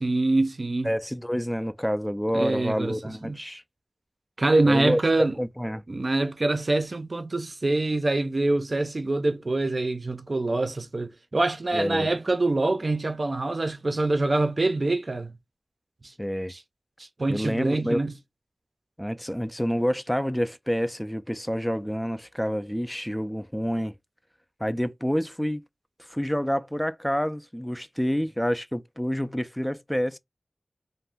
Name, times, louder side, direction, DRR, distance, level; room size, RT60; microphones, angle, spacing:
voice 1, 0.0-0.9 2.3-3.0 3.2-3.4 4.4-5.3 5.9-15.3 16.5-16.6 17.0-18.1, right 2 dB, 50° right, 0.5 m, -25 dB
voice 2, 0.8-3.6 4.6-5.8 11.7-12.1 16.2-16.5 17.3-18.0 19.0-23.9 24.6-25.6 26.1-30.2, equal, 5° left, 0.3 m, -28 dB
2.5 x 2.2 x 3.4 m
wide cardioid pair, 65°, 0 cm